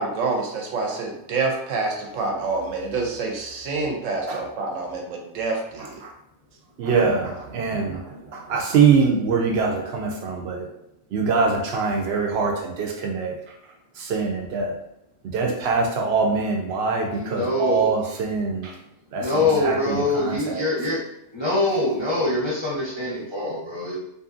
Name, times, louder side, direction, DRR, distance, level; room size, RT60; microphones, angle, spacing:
voice 1, 0.0-6.0, right 3 dB, 80° right, 1 dB, 1.0 m, -27 dB
voice 2, 6.8-10.7 11.1-13.4 14.0-14.8 15.3-18.8 19.1-20.6, right 5 dB, 65° right, 1 dB, 0.7 m, -23 dB
voice 3, 17.1-18.2 19.2-21.0 21.3-24.0, left 2 dB, 30° left, -9 dB, 0.6 m, -24 dB
2.6 x 2.6 x 2.5 m, 0.80 s
omnidirectional pair, 1.3 m